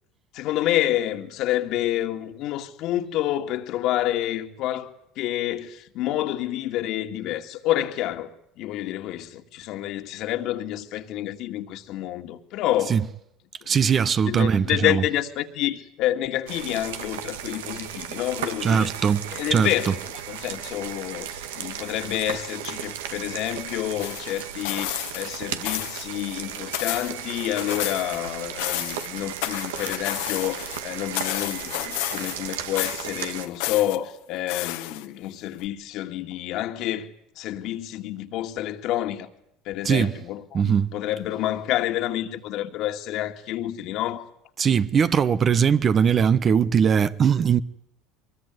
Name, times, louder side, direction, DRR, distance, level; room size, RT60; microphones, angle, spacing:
voice 1, 0.3-8.3 8.6-13.0 13.6-13.8 14.2-18.9 19.3-20.0 20.3-39.3 39.7-44.3, left 13 dB, 60° left, 2.4 m, -28 dB
voice 2, 13.7-15.0 18.6-19.7 39.8-40.1 40.5-40.9 44.6-47.6, right 7 dB, 35° right, 1.1 m, -20 dB
sound 1, 16.5-33.5, right 9 dB, 90° right, 1.9 m, -35 dB
sound 2, 24.0-25.4 25.7-26.1 26.4-28.2 28.5-30.8 31.2-32.5 32.8-34.0 34.5-35.3 35.7-35.8, left 17 dB, 80° left, 1.7 m, -31 dB
23.5 x 21.5 x 9.7 m
supercardioid pair, 100°, 0 cm